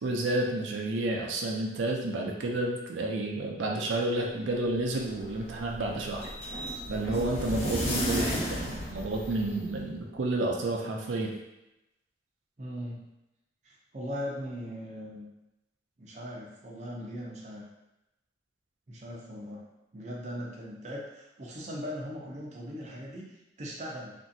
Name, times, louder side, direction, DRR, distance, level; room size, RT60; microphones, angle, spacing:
voice 1, 0.0-6.3 6.9-11.3, right 2 dB, 90° right, 0 dB, 0.5 m, -30 dB
sound 1, 4.7-9.8, equal, 35° left, 0.5 m, -34 dB
voice 2, 12.6-13.0 13.6-15.3 16.0-17.6 18.9-19.6 19.9-24.1, equal, 40° right, -3 dB, 0.5 m, -39 dB
2.9 x 2.5 x 2.6 m, 0.93 s
head